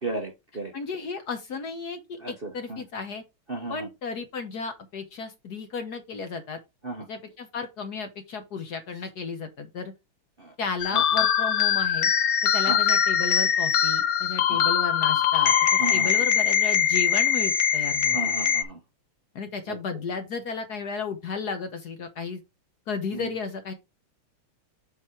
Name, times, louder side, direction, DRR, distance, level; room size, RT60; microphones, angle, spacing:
voice 1, 0.0-0.7 2.2-2.8 3.5-3.9 6.8-7.1 10.4-10.5 10.9-11.0 12.7-12.8 14.5-14.7 15.8-16.2 18.1-18.8 19.7-19.8 23.1-23.3, right 2 dB, 35° right, 1.0 m, -34 dB
voice 2, 0.7-3.2 3.7-6.6 7.1-9.9 10.6-12.1 12.5-15.5 15.9-18.2 19.3-22.4 22.9-23.7, left 5 dB, 55° left, 1.4 m, -33 dB
sound 1, 10.8-18.6, left 8 dB, 75° left, 0.8 m, -22 dB
7.5 x 4.2 x 4.4 m
omnidirectional pair, 2.4 m